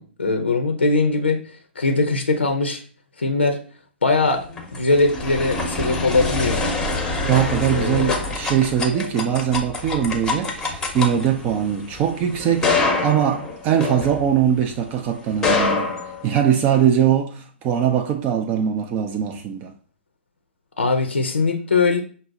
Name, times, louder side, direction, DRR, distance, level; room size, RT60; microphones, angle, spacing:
voice 1, 0.0-2.8 3.2-3.6 4.0-4.4 4.7-6.7 7.8-8.2 20.8-22.0, left 3 dB, 75° left, 0.6 m, -21 dB
sound 1, 4.3-14.7 15.3-16.8, left 3 dB, 10° left, 0.7 m, -26 dB
voice 2, 7.2-15.9 16.2-19.7, right 9 dB, 25° right, 0.4 m, -21 dB
5.3 x 2.1 x 3.7 m
figure-of-eight pair, 115°, 6 cm